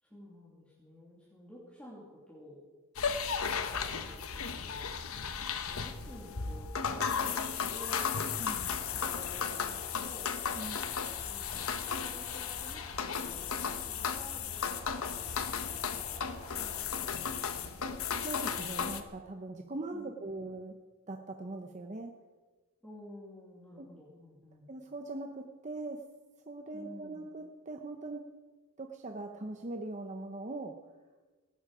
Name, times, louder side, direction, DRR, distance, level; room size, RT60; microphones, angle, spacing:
voice 1, 0.0-2.6 3.4-4.9 5.5-8.2 8.8-10.4 11.3-13.5 13.8-15.0 15.3-17.9 19.9-20.3 22.8-24.7 26.7-27.3, left 1 dB, 5° left, -7 dB, 3.0 m, -52 dB
sound 1, 3.0-19.0, left 6 dB, 70° left, 1.1 m, -35 dB
sound 2, 7.8-16.8, left 2 dB, 30° left, 4.0 m, -52 dB
voice 2, 10.5-10.8 18.2-20.8 21.1-22.1 23.8-23.9 24.7-26.0 26.5-28.2 28.8-30.8, right 2 dB, 35° right, 4 dB, 0.8 m, -41 dB
18.0 x 15.0 x 5.0 m, 1.3 s
head